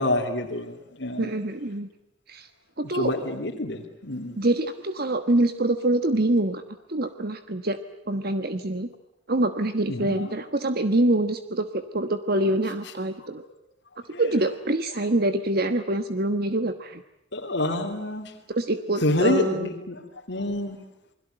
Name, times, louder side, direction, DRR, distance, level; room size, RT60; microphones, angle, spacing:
voice 1, 0.0-1.3 2.9-4.4 9.9-10.2 12.3-12.4 14.1-14.2 17.3-18.3 19.0-20.0 20.3-20.8, left 1 dB, 60° left, 0 dB, 2.8 m, -27 dB
voice 2, 1.2-1.9 2.3-2.5 2.8-3.1 4.4-6.6 6.9-7.8 8.1-8.9 9.3-13.4 14.2-17.0 18.5-19.7, right 1 dB, 50° right, 9 dB, 1.3 m, -25 dB
29.0 x 21.5 x 9.1 m, 0.79 s
head